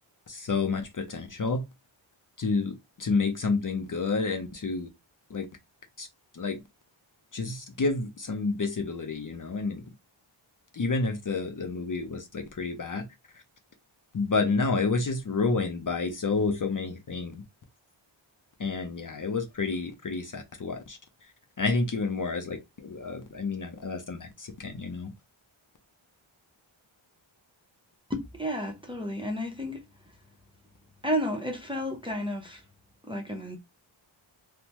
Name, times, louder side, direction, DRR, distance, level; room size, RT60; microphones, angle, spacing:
voice 1, 0.3-1.6 2.4-4.9 5.3-5.4 6.0-6.1 6.4-6.6 7.3-9.8 10.8-13.0 14.1-17.4 18.6-21.0 21.6-22.6 22.8-25.1, left 4 dB, 40° left, 0.6 m, -29 dB
voice 2, 28.1-29.8 31.0-32.6 33.0-33.6, equal, 10° right, 0.7 m, -32 dB
3.3 x 2.0 x 2.9 m
wide cardioid pair, 100°, 49 cm